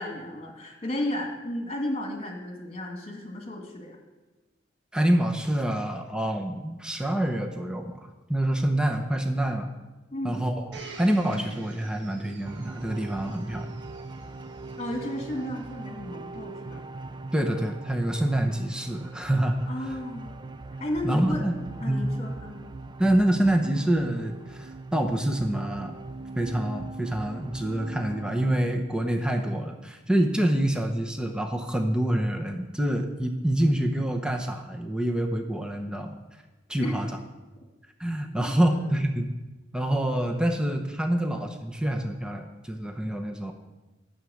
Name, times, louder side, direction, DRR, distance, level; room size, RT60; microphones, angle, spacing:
voice 1, 0.0-4.0 10.1-10.4 14.8-16.8 19.7-20.4 20.8-21.4 21.8-22.6 36.8-37.0 38.2-38.9, left 1 dB, 35° left, 2 dB, 2.2 m, -33 dB
voice 2, 4.9-9.7 10.2-10.6 11.0-13.7 17.3-19.9 21.0-21.5 21.8-22.1 23.0-26.0 26.4-36.2 36.7-37.1 38.0-39.3 39.7-43.5, right 1 dB, 5° right, 3 dB, 0.8 m, -26 dB
Domestic sounds home sounds, 10.7-15.6 16.3-16.4, right 3 dB, 75° right, 1.3 m, -48 dB
sound 1, 12.4-28.6, right 3 dB, 25° right, 0.4 m, -41 dB
9.6 x 7.0 x 8.5 m, 1.1 s
head